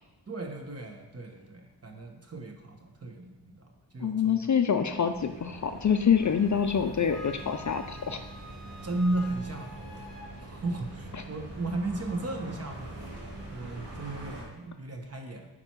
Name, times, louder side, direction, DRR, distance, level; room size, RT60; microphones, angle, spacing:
voice 1, 0.3-4.5 8.8-10.1 10.4-15.5, right 2 dB, 35° right, 3 dB, 1.1 m, -35 dB
voice 2, 4.0-8.2, left 7 dB, 45° left, 7 dB, 0.4 m, -26 dB
sound 1, 4.6-14.4, right 1 dB, 75° right, 2.4 m, -44 dB
Wind instrument woodwind instrument, 6.2-10.3, equal, ahead, 1.0 m, -48 dB
8.8 x 4.5 x 4.6 m, 1.2 s
wide cardioid pair, 155°, 42 cm